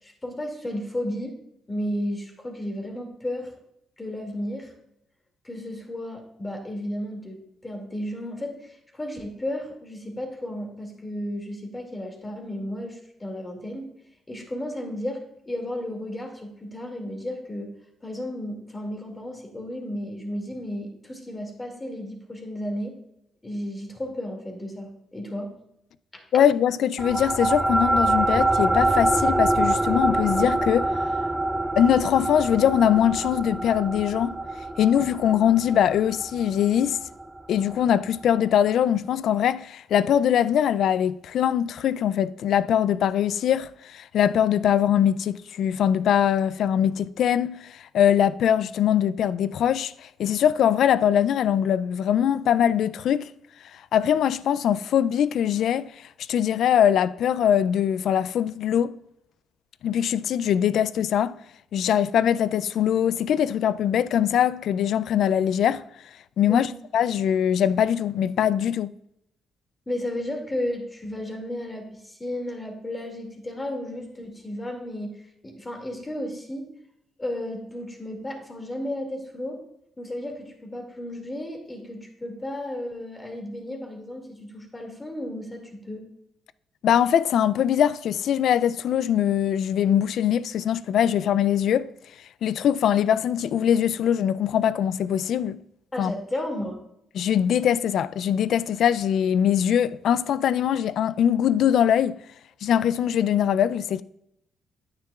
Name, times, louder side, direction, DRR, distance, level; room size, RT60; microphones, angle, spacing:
voice 1, 0.0-1.4 1.7-3.5 4.0-4.7 5.4-13.9 14.3-17.7 18.0-23.0 23.4-25.5 26.1-26.2 66.5-66.7 69.9-76.7 77.2-79.6 80.0-86.0 95.9-96.8, left 1 dB, 20° left, 2.3 m, -33 dB
voice 2, 26.3-30.9 31.8-34.4 34.8-37.0 37.5-53.3 53.7-58.9 59.8-61.4 61.7-65.8 66.4-68.9 86.8-91.9 92.4-95.6 96.0-96.1 97.1-102.2 102.6-104.0, left 9 dB, 70° left, 0.3 m, -22 dB
sound 1, 27.0-37.8, right 2 dB, 15° right, 0.4 m, -25 dB
9.7 x 9.3 x 2.4 m
cardioid pair, 90°, 0 cm